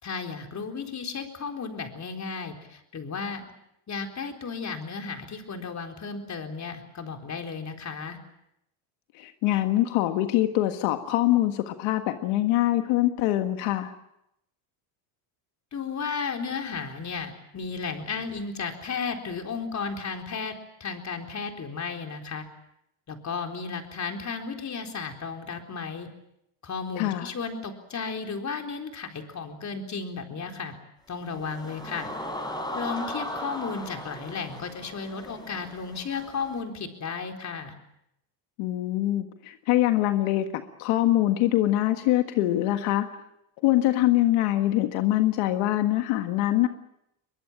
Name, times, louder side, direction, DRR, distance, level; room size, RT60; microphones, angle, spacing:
voice 1, 0.0-3.5 3.9-8.2 15.7-20.5 20.8-22.4 23.1-26.1 26.6-30.7 31.1-32.1 32.7-37.8, left 5 dB, 35° left, 4 dB, 4.1 m, -34 dB
voice 2, 9.1-13.9 27.0-27.3 38.6-40.5 40.8-43.1 43.6-46.7, left 15 dB, 80° left, 7 dB, 1.7 m, -24 dB
sound 1, 31.1-36.6, left 1 dB, 10° left, 5.5 m, -37 dB
23.0 x 22.0 x 8.8 m, 0.81 s
cardioid pair, 115°, 49 cm